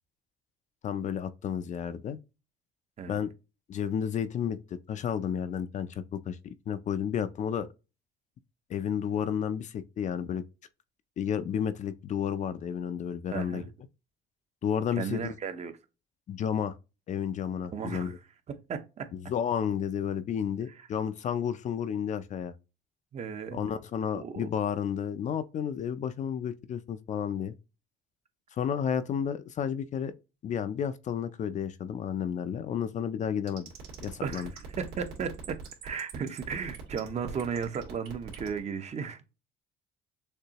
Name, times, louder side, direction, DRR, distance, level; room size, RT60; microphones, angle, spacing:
voice 1, 0.8-2.2 3.1-3.3 3.7-7.7 8.7-10.4 11.2-13.6 14.6-15.3 16.3-16.8 17.1-18.2 19.2-22.5 23.5-27.5 28.5-30.1 30.4-33.7 34.0-34.5, left 8 dB, 45° left, 0.5 m, -31 dB
voice 2, 13.3-13.7 15.0-15.7 17.7-18.2 18.5-19.1 23.1-23.6 24.1-24.5 34.2-39.2, right 6 dB, 40° right, 0.8 m, -35 dB
sound 1, 33.5-38.6, right 7 dB, 75° right, 2.1 m, -43 dB
6.6 x 2.7 x 2.9 m
cardioid pair, 110°, 17 cm